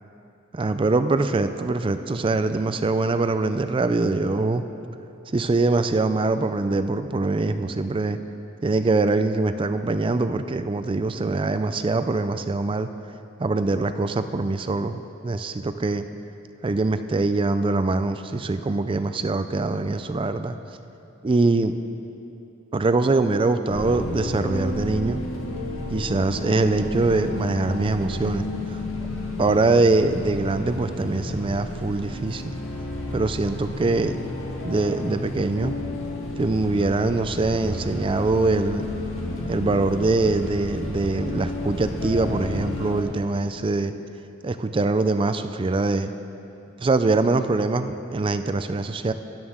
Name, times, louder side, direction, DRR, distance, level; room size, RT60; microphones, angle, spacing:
voice 1, 0.5-4.6 5.3-8.2 8.6-12.9 13.4-16.0 16.6-20.6 21.2-21.7 22.7-25.2 25.9-28.8 29.4-32.5 33.1-34.2 34.6-35.7 36.4-38.9 39.5-43.9 44.4-46.1 46.8-49.1, right 3 dB, 25° right, 10 dB, 0.4 m, -23 dB
sound 1, 23.7-43.0, left 2 dB, 90° left, 1.6 m, -32 dB
13.0 x 11.0 x 3.7 m, 2.8 s
head